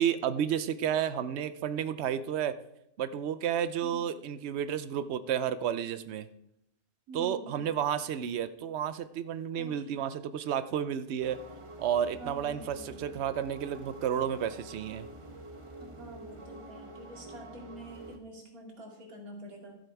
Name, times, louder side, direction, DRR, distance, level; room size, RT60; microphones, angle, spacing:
voice 1, 0.0-2.5 3.0-6.3 7.1-11.4 11.8-15.1, right 9 dB, 60° right, 12 dB, 0.9 m, -31 dB
voice 2, 7.1-7.6 9.6-10.0 12.1-13.1 15.8-19.8, right 1 dB, 90° right, 0 dB, 2.9 m, -47 dB
sound 1, 11.2-18.2, right 1 dB, 25° right, 0.9 m, -47 dB
13.0 x 7.7 x 4.6 m, 0.79 s
omnidirectional pair, 1.5 m